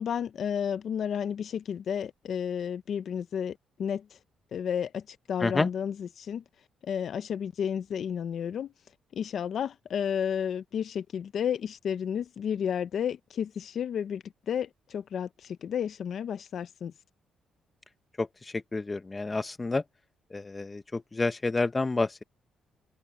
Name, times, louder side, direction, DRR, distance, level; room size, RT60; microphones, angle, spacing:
voice 1, 0.0-4.2 4.5-6.4 6.8-8.7 9.1-16.9, left 8 dB, 60° left, 0.7 m, -32 dB
voice 2, 18.2-19.8 20.3-22.2, left 3 dB, 25° left, 1.3 m, -29 dB
cardioid pair, 90°, 0 cm